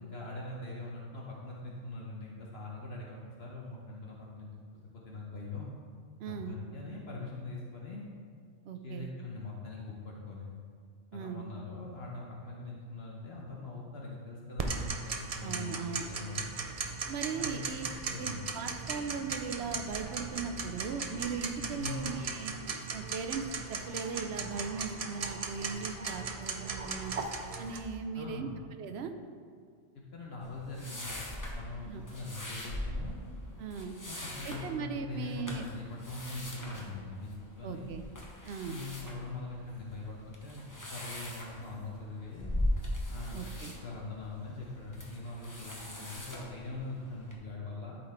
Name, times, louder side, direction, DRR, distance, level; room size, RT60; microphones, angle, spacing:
voice 1, 0.0-5.7 6.4-8.1 8.8-10.5 11.1-16.7 17.3-18.5 21.8-22.1 28.1-28.6 30.1-33.2 34.0-38.0 38.7-42.6 43.1-48.0, left 3 dB, 60° left, -3 dB, 1.1 m, -42 dB
voice 2, 6.2-6.5 8.6-9.1 11.1-11.5 15.4-16.1 17.1-17.8 18.2-22.5 22.9-23.4 23.7-27.1 27.6-28.5 28.8-29.1 31.8-32.0 33.6-34.0 34.4-35.7 37.6-38.0 38.5-38.8 43.3-43.7, right 5 dB, 65° right, 7 dB, 0.8 m, -38 dB
Tick-tock, 14.6-27.8, right 4 dB, 45° right, 0.5 m, -38 dB
sound 1, 30.4-47.4, left 1 dB, 15° left, 0.9 m, -40 dB
11.5 x 4.3 x 4.3 m, 2.1 s
omnidirectional pair, 1.2 m